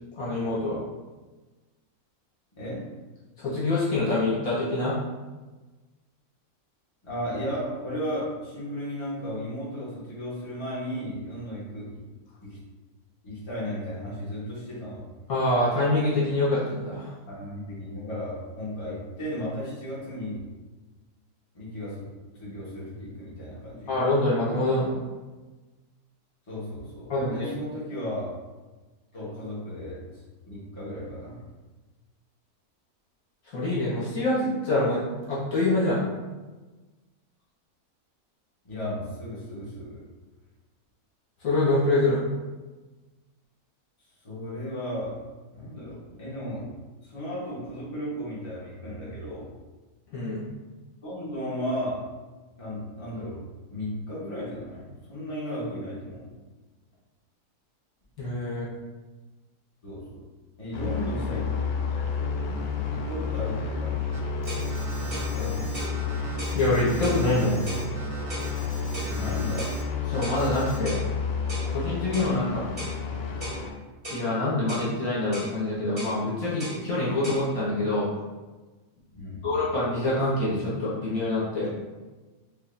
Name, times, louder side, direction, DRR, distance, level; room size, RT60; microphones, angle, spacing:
voice 1, 0.2-0.8 3.4-4.9 15.3-17.1 23.9-25.0 27.1-27.5 33.4-35.0 35.3-36.0 41.4-42.2 50.1-50.5 58.2-58.7 66.5-67.6 70.1-71.1 71.6-72.7 74.1-78.1 79.4-81.7, left 2 dB, 65° left, -8 dB, 1.6 m, -25 dB
voice 2, 7.0-12.0 12.4-12.6 13.2-15.0 17.3-20.4 21.5-22.1 22.3-24.0 26.5-28.3 29.1-30.2 30.5-31.4 38.6-40.0 44.2-45.1 45.5-46.6 47.0-49.5 51.0-52.0 52.6-53.4 53.7-56.2 59.8-60.2 60.6-61.4 62.5-62.6 62.9-63.9 64.9-66.1 69.1-69.7 79.1-79.5, equal, 20° left, -9 dB, 1.2 m, -35 dB
sound 1, 60.7-73.7, left 5 dB, 80° left, 1.1 m, -30 dB
sound 2, 64.0-64.1 64.5-64.7 65.1-65.3 65.7-66.0 66.4-66.6 67.0-67.2 67.7-67.9 68.3-68.5 68.9-69.1 69.6-69.8 70.2-70.4 70.8-71.1 71.5-71.7 72.1-72.3 72.8-73.0 73.4-73.6 74.0-74.3 74.7-74.9 75.3-75.5 76.0-76.2 76.6-76.8 77.2-77.4, right 1 dB, 20° right, 1.0 m, -37 dB
Alarm, 64.1-69.8 70.1-70.8, right 3 dB, 70° right, 0.4 m, -44 dB
5.2 x 2.5 x 2.6 m, 1.2 s
omnidirectional pair, 1.6 m